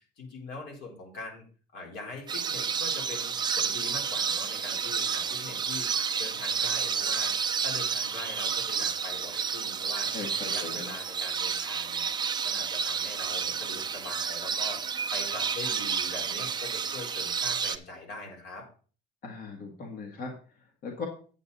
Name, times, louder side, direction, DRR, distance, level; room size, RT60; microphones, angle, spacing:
voice 1, 0.0-1.4 1.7-10.1 10.4-12.1 12.4-18.7, left 3 dB, 65° left, 0 dB, 3.9 m, -42 dB
sound 1, 2.3-17.8, right 6 dB, 25° right, 0.6 m, -30 dB
voice 2, 10.1-10.9 19.2-20.3 20.8-21.1, left 4 dB, 50° left, 1 dB, 1.9 m, -38 dB
9.0 x 8.5 x 4.0 m, 0.40 s
cardioid pair, 155°, 19 cm